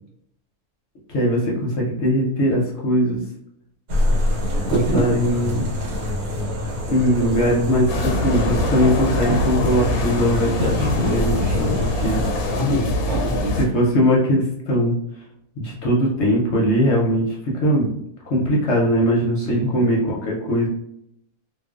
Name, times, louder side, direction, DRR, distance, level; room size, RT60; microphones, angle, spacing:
voice 1, 1.1-3.2 4.7-5.7 6.9-12.2 13.6-15.0 15.6-18.0 18.3-20.7, equal, 60° left, -2 dB, 0.8 m, -20 dB
sound 1, 3.9-12.5, left 1 dB, 85° right, 1.2 m, -25 dB
voice 2, 4.6-5.1 12.4-13.6 18.5-18.6 19.4-19.7, equal, 65° right, -1 dB, 0.8 m, -26 dB
sound 2, 7.9-13.7, left 2 dB, 90° left, 1.1 m, -24 dB
2.4 x 2.2 x 2.3 m, 0.73 s
omnidirectional pair, 1.5 m